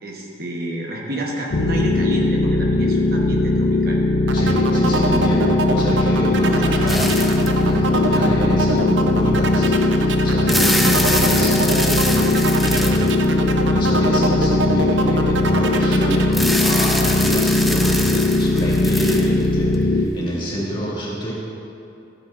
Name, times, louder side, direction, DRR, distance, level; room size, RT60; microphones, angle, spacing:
voice 1, 0.0-4.0 6.3-7.0, right 1 dB, 50° right, -2 dB, 1.0 m, -29 dB
sound 1, 1.5-20.1, left 2 dB, 70° left, 0.5 m, -19 dB
voice 2, 4.3-7.0 7.5-21.3, equal, 25° left, -8 dB, 2.0 m, -27 dB
sound 2, 4.3-16.3, right 2 dB, 75° right, 0.5 m, -25 dB
sound 3, 6.9-7.7 8.4-8.5 10.2-13.5 16.3-19.7, equal, ahead, 0.4 m, -25 dB
14.0 x 8.3 x 2.5 m, 2.8 s
head